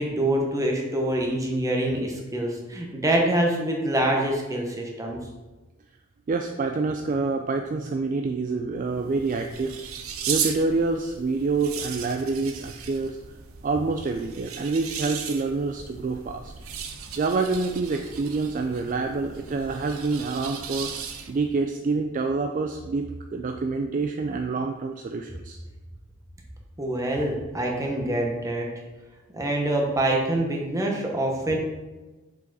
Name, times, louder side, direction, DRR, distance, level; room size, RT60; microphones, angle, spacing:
voice 1, 0.0-5.2 26.8-28.7 29.3-31.6, right 1 dB, 15° right, 0 dB, 1.0 m, -25 dB
voice 2, 6.3-9.8 10.3-13.2 13.6-16.5 17.2-21.0 21.3-25.6, right 3 dB, 40° right, 5 dB, 0.3 m, -27 dB
sound 1, 8.8-21.5, right 7 dB, 75° right, 0.7 m, -36 dB
6.7 x 5.0 x 4.0 m, 1.2 s
head